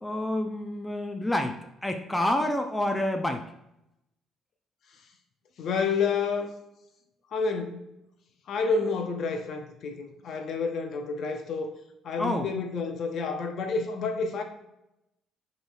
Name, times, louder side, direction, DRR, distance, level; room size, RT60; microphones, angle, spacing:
voice 1, 0.0-3.4 12.2-12.5, left 1 dB, 10° left, 4 dB, 0.4 m, -28 dB
voice 2, 5.6-6.5 7.3-7.9 8.5-11.7 12.0-14.4, left 4 dB, 60° left, 6 dB, 0.6 m, -29 dB
5.0 x 3.1 x 2.3 m, 0.85 s
cardioid pair, 100°, 0 cm